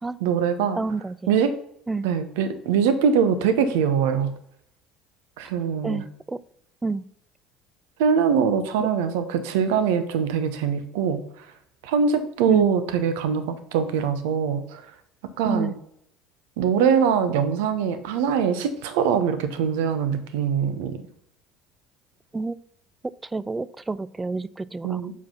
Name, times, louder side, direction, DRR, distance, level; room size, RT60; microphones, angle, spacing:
voice 1, 0.2-0.8 1.3-1.5 2.0-4.3 5.4-6.0 8.0-11.5 11.8-14.9 15.2-15.7 16.6-21.0 24.8-25.1, right 7 dB, 75° right, 11 dB, 0.8 m, -23 dB
voice 2, 0.7-1.3 1.9-2.1 5.8-6.4 6.8-7.1 8.8-8.9 12.5-12.7 15.4-15.8 22.3-22.6 23.2-25.0, right 3 dB, 20° right, 18 dB, 0.4 m, -29 dB
6.0 x 4.8 x 5.6 m, 0.72 s
hypercardioid pair, 65°, 0 cm